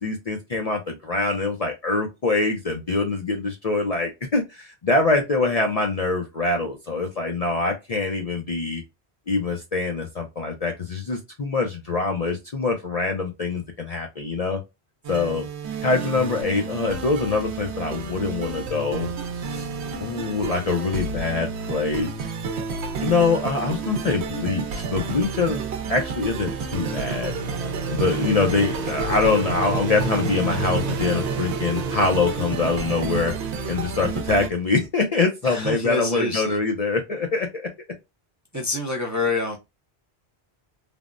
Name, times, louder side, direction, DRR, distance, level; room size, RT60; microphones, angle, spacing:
voice 1, 0.0-8.8 9.3-14.6 15.1-15.5 15.8-19.7 20.0-22.1 23.0-25.6 25.9-27.3 27.9-33.3 33.7-37.7, left 3 dB, 45° left, 0.5 m, -24 dB
sound 1, 15.0-34.5, right 5 dB, 85° right, 0.9 m, -31 dB
sound 2, 25.8-34.4, right 4 dB, 60° right, 0.8 m, -32 dB
voice 2, 35.4-36.6 38.5-39.6, left 2 dB, 20° right, 0.5 m, -26 dB
3.4 x 2.1 x 2.4 m
omnidirectional pair, 1.1 m